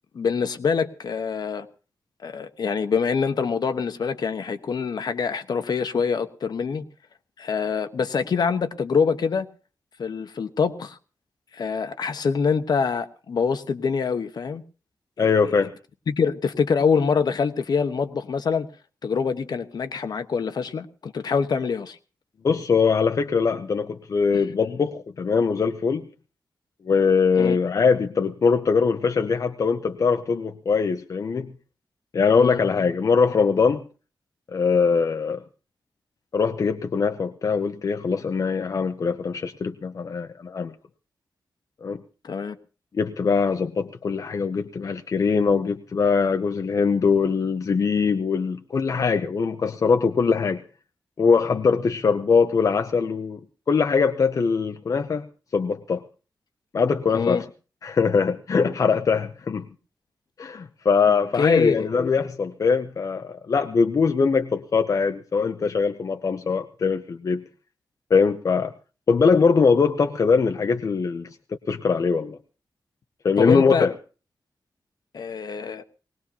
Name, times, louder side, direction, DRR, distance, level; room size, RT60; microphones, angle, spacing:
voice 1, 0.1-1.7 2.2-6.9 7.4-9.5 10.0-11.0 11.5-14.6 15.2-15.3 16.1-18.7 19.0-22.0 24.3-24.5 27.4-27.6 32.4-32.6 42.2-42.6 57.1-57.4 61.4-61.9 73.4-73.9 75.1-75.8, left 5 dB, 65° left, 10 dB, 1.1 m, -25 dB
voice 2, 15.2-15.7 22.4-26.1 26.9-31.5 32.1-33.8 34.5-35.4 36.3-40.7 41.8-42.0 42.9-50.6 51.2-53.4 53.7-55.3 55.5-56.0 56.7-57.5 57.8-59.7 60.4-67.4 68.1-68.7 69.1-71.3 71.7-72.4 73.2-73.9, left 5 dB, 50° left, 7 dB, 0.7 m, -22 dB
20.0 x 19.0 x 2.8 m, 0.35 s
wide cardioid pair, 155°, 7 cm